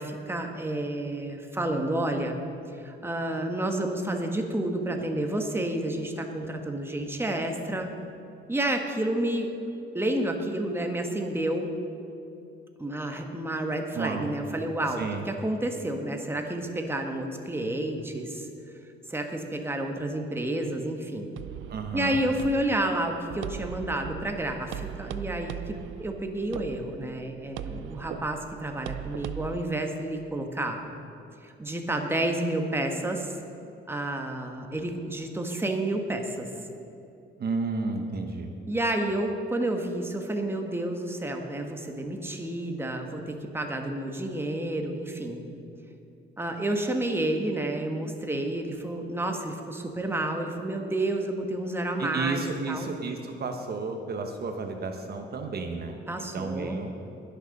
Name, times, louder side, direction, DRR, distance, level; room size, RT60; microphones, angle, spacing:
voice 1, 0.0-2.4 2.8-7.9 8.5-9.5 9.9-11.7 12.8-18.5 19.1-21.3 21.9-30.8 31.4-33.3 33.9-36.5 38.7-45.4 46.4-52.9 56.1-56.8, right 1 dB, 10° right, 3 dB, 1.5 m, -30 dB
voice 2, 13.9-14.3 15.0-15.2 21.7-22.2 37.4-38.5 52.0-56.9, right 4 dB, 50° right, 5 dB, 1.1 m, -32 dB
sound 1, 21.4-29.6, right 11 dB, 85° right, 0.5 m, -39 dB
20.5 x 6.8 x 5.4 m, 2.7 s
cardioid pair, 90°, 20 cm